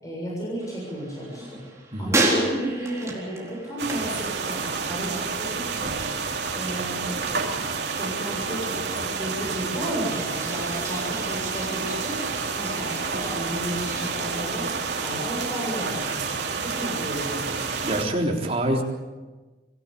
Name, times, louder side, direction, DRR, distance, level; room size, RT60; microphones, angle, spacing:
voice 1, 0.0-1.6 2.0-6.0 6.5-7.5 8.0-12.2 12.5-14.7 15.0-16.3 16.6-17.5, right 1 dB, 20° left, -4 dB, 7.2 m, -33 dB
sound 1, 0.6-5.0 5.3-5.9 10.0-17.9, right 2 dB, 15° right, 4.3 m, -33 dB
sound 2, 3.8-18.0, right 5 dB, 75° right, 2.4 m, -29 dB
voice 2, 17.8-18.8, right 1 dB, 35° right, 0 dB, 3.7 m, -25 dB
25.5 x 16.0 x 8.6 m, 1.2 s
head